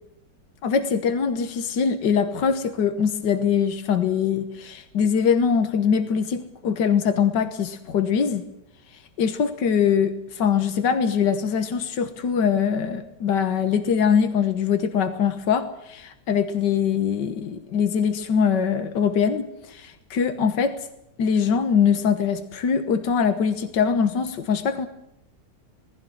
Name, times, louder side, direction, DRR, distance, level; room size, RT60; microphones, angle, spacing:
voice 1, 0.6-8.5 9.2-20.8 21.2-24.9, left 7 dB, 85° left, 9 dB, 1.9 m, -22 dB
19.0 x 15.5 x 9.1 m, 0.82 s
omnidirectional pair, 1.8 m